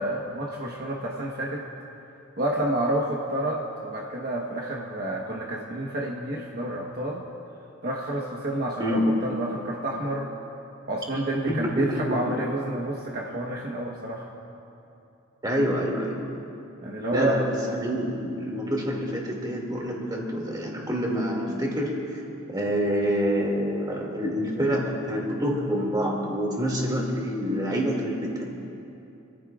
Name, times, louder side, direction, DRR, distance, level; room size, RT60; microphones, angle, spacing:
voice 1, 0.0-1.6 2.4-7.2 7.8-10.3 10.9-14.3 16.8-17.4, right 1 dB, 45° right, -3 dB, 1.2 m, -29 dB
voice 2, 11.5-12.2 15.4-16.2 17.1-17.5 17.8-22.2 22.5-28.4, equal, 20° right, -2 dB, 2.4 m, -27 dB
26.5 x 15.0 x 2.5 m, 2.8 s
head